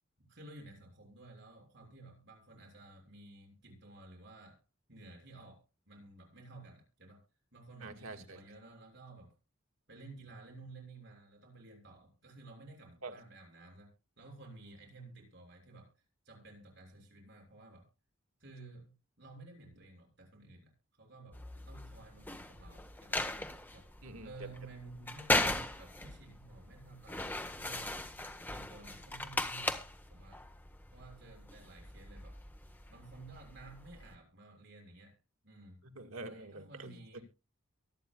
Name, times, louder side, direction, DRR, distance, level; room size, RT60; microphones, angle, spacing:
voice 1, 0.2-4.6 4.9-7.2 7.5-9.4 9.9-13.9 14.2-15.9 16.2-17.9 18.4-23.2 23.7-23.9 24.2-27.9 28.5-30.4 30.9-32.4 32.9-35.2 35.4-35.8 36.3-37.2, right 2 dB, 55° right, 2 dB, 6.6 m, -53 dB
voice 2, 7.8-8.4 13.0-13.2 24.0-24.5 35.8-37.2, right 2 dB, 85° right, 5 dB, 2.2 m, -46 dB
sound 1, 21.3-34.1, left 2 dB, 10° left, 1.2 m, -39 dB
23.5 x 9.3 x 2.4 m, 0.28 s
head